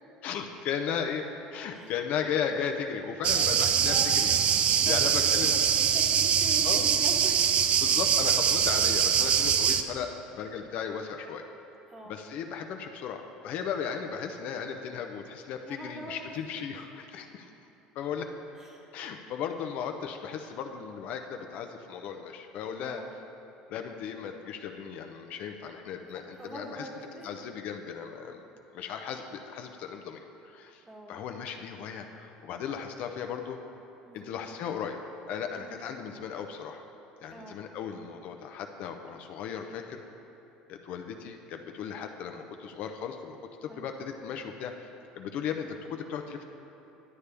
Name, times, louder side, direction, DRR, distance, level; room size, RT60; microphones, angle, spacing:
voice 1, 0.2-5.5 6.6-6.9 7.8-11.4 12.1-17.5 18.0-18.3 18.9-23.0 23.7-26.9 27.2-28.4 28.7-30.8 31.1-33.6 34.1-35.0 35.3-36.8 37.2-40.0 40.7-44.7 45.2-46.4, left 7 dB, 55° left, 5 dB, 0.6 m, -36 dB
sound 1, 3.2-9.8, right 8 dB, 40° right, 0.4 m, -24 dB
voice 2, 3.3-4.2 4.6-5.0 5.3-7.9 11.9-12.2 15.6-16.4 18.5-18.9 22.8-23.2 26.1-27.4 30.8-31.2 34.0-34.4 35.5-35.8 37.3-37.6 43.7-43.9, right 1 dB, 15° right, 0 dB, 1.2 m, -43 dB
11.0 x 8.3 x 3.4 m, 3.0 s
cardioid pair, 125°, 3 cm